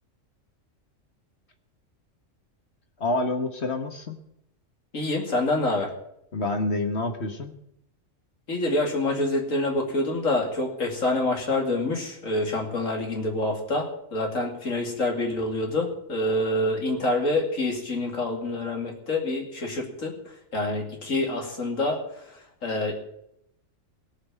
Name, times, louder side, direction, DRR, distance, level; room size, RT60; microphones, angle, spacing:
voice 1, 3.0-4.2 6.3-7.5, left 2 dB, 55° left, 5 dB, 1.5 m, -27 dB
voice 2, 4.9-5.9 8.5-20.1 20.5-22.0 22.6-22.9, left 2 dB, 85° left, 1 dB, 2.9 m, -26 dB
17.5 x 6.1 x 9.1 m, 0.77 s
omnidirectional pair, 1.3 m